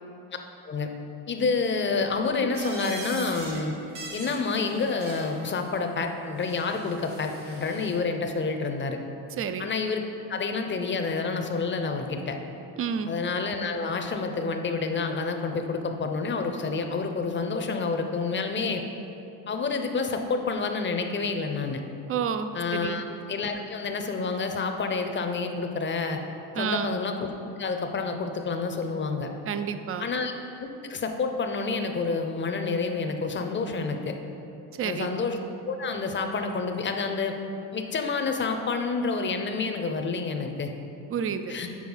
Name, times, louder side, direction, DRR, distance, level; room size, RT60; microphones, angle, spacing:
voice 1, 1.3-3.7 4.1-9.0 9.6-10.0 10.3-12.4 13.1-18.8 19.5-21.8 22.5-26.2 26.6-27.2 27.6-29.3 30.0-34.1 34.8-35.4 35.7-37.3 37.7-40.7 41.5-41.7, left 4 dB, 25° left, 5 dB, 0.7 m, -28 dB
sound 1, 2.5-3.6 3.9-5.4 6.4-7.9, right 2 dB, 80° right, 1.5 m, -41 dB
voice 2, 9.4-9.7 12.8-13.1 22.1-23.0 26.5-26.9 29.5-30.1 34.8-35.1 41.1-41.5, right 7 dB, 35° right, 9 dB, 0.4 m, -30 dB
6.2 x 4.5 x 5.5 m, 2.8 s
cardioid pair, 90°, 42 cm